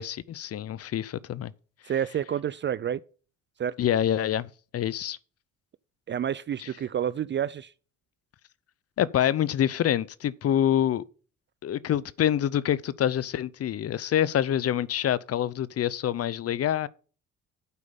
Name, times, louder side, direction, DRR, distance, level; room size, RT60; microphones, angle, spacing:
voice 1, 0.0-1.5 3.8-5.2 6.6-6.7 9.0-11.0 11.6-16.9, left 10 dB, 50° left, 0.6 m, -26 dB
voice 2, 1.8-3.0 3.6-3.7 6.1-7.7, right 9 dB, 40° right, 0.4 m, -29 dB
8.3 x 5.4 x 6.8 m
cardioid pair, 90°, 30 cm